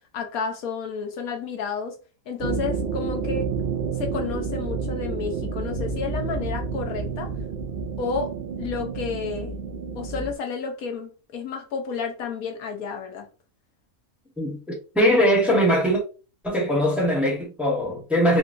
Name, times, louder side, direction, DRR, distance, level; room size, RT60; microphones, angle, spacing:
voice 1, 0.1-2.0 2.3-3.5 4.0-7.3 8.0-9.5 9.9-13.3, left 5 dB, 85° left, 1.2 m, -31 dB
sound 1, 2.4-10.3, right 5 dB, 80° right, 0.5 m, -29 dB
voice 2, 14.4-16.0 16.4-18.4, equal, ahead, 0.9 m, -21 dB
3.9 x 2.2 x 2.5 m
omnidirectional pair, 1.5 m